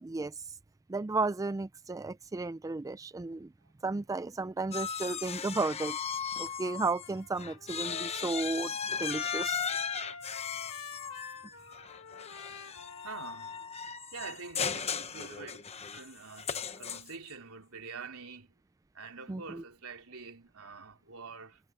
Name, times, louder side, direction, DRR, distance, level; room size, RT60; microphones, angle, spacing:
voice 1, 0.0-0.3 0.9-3.5 3.8-6.0 6.4-8.7 9.0-9.6 19.3-19.6, right 3 dB, 15° right, 0.3 m, -33 dB
sound 1, 4.7-7.1 7.4-17.3, left 7 dB, 30° left, 1.1 m, -37 dB
Trumpet, 7.0-13.8, left 6 dB, 75° left, 1.4 m, -47 dB
voice 2, 12.5-13.7 14.1-18.5 18.9-21.6, right 4 dB, 80° right, 3.4 m, -46 dB
head